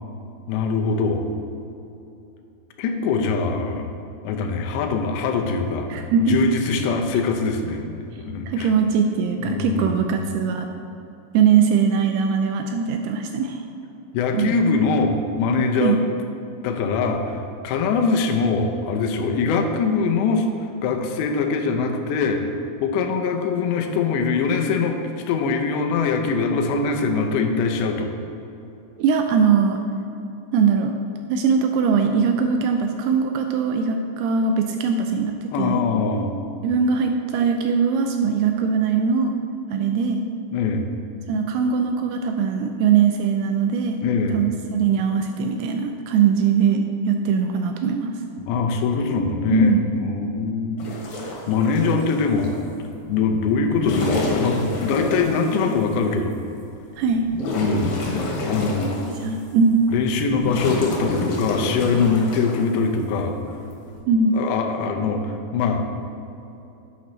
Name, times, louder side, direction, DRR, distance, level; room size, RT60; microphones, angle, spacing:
voice 1, 0.5-1.3 2.8-3.9 4.2-8.7 9.4-10.0 14.1-16.0 16.6-20.5 20.8-22.4 22.8-25.0 25.3-28.1 35.5-36.4 37.4-37.5 40.5-40.9 44.0-44.4 48.4-50.8 51.5-52.5 53.1-56.4 57.5-58.0 58.5-58.9 59.9-63.3 64.3-65.8, left 4 dB, 90° left, 4 dB, 3.0 m, -23 dB
voice 2, 5.9-6.5 8.5-10.7 11.3-13.6 14.4-14.5 15.8-16.0 29.0-29.8 30.5-31.0 31.3-35.8 36.6-39.3 39.7-40.2 41.3-44.0 44.3-48.1 49.5-49.8 57.0-57.3 59.1-59.8 64.1-64.4, right 6 dB, 85° right, 5 dB, 2.4 m, -21 dB
sound 1, 50.8-52.5 53.6-55.7 56.3-56.4 56.9-59.4 59.9-62.5 63.7-64.0, left 2 dB, 60° left, 3.1 m, -28 dB
10.5 x 8.4 x 3.1 m, 2.9 s
omnidirectional pair, 4.9 m